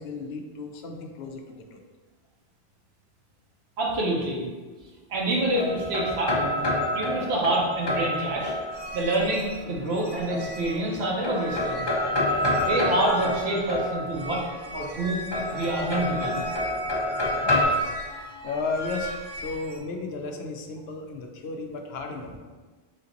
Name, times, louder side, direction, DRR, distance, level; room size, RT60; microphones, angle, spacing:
voice 1, 0.0-1.8 18.4-22.4, left 3 dB, 75° left, 3 dB, 0.8 m, -34 dB
voice 2, 3.8-4.4 5.1-6.6 6.9-8.5 8.9-11.8 12.2-14.4 14.7-15.2 15.5-16.4 17.5-17.7, right 1 dB, 80° right, -2 dB, 1.1 m, -27 dB
sound 1, 5.1-9.1 10.3-10.9 11.2-14.4 15.3-17.6, left 1 dB, 30° left, 0.5 m, -28 dB
sound 2, 8.7-19.8, equal, 50° right, 0.7 m, -39 dB
3.6 x 2.8 x 3.8 m, 1.3 s
omnidirectional pair, 1.0 m